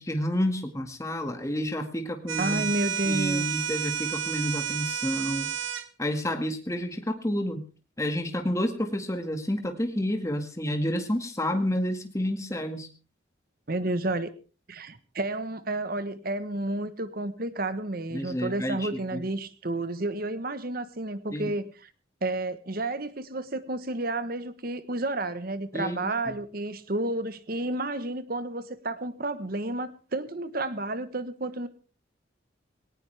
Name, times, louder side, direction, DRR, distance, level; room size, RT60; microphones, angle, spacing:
voice 1, 0.0-2.7 3.0-5.5 6.0-7.6 8.0-12.9 18.1-19.2 21.3-21.5 25.7-26.4, equal, 15° left, 5 dB, 2.0 m, -30 dB
sound 1, 2.3-5.9, right 9 dB, 90° right, 1.3 m, -31 dB
voice 2, 2.4-3.6 13.7-14.3 14.7-21.7 22.2-31.7, right 2 dB, 50° right, 13 dB, 1.2 m, -31 dB
18.5 x 18.5 x 3.5 m, 0.36 s
head